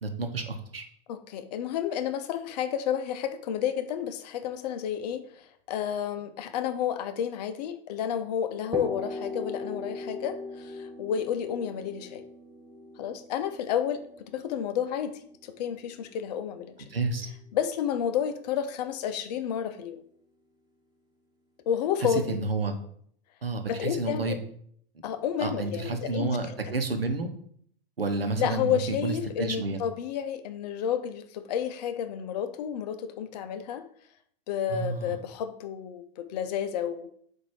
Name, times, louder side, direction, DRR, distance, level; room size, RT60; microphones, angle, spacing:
voice 1, 0.0-0.8 16.9-17.3 22.3-22.7 23.4-24.4 25.4-27.3 28.0-29.8 34.7-35.1, right 3 dB, 80° right, 6 dB, 0.9 m, -30 dB
voice 2, 1.1-12.2 13.0-16.7 17.5-20.0 21.7-22.4 23.7-24.4 25.0-26.6 28.4-33.8 34.5-37.1, left 9 dB, 45° left, 10 dB, 0.6 m, -31 dB
sound 1, 8.7-16.4, left 2 dB, 15° right, 0.9 m, -40 dB
7.9 x 2.7 x 4.6 m, 0.63 s
figure-of-eight pair, 95°, 29 cm